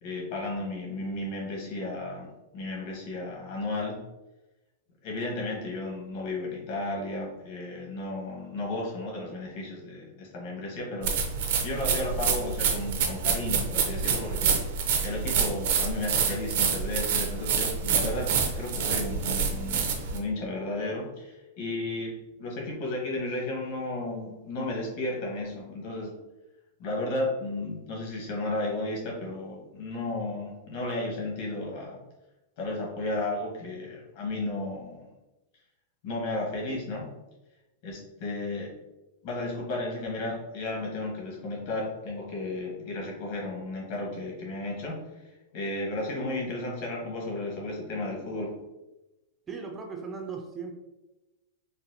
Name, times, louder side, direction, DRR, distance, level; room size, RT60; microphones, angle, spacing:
voice 1, 0.0-2.3 2.5-4.0 5.0-11.3 11.6-14.7 15.0-18.3 18.6-22.1 22.4-26.1 26.8-32.0 32.6-35.1 36.0-37.1 37.8-38.7 39.2-45.0 45.5-48.5, left 2 dB, 50° left, -2 dB, 1.2 m, -33 dB
sound 1, 11.0-20.2, right 6 dB, 60° right, 0.6 m, -27 dB
voice 2, 49.5-50.7, right 5 dB, 15° right, 2 dB, 0.4 m, -37 dB
4.0 x 2.1 x 2.7 m, 1.0 s
supercardioid pair, 155°, 0 cm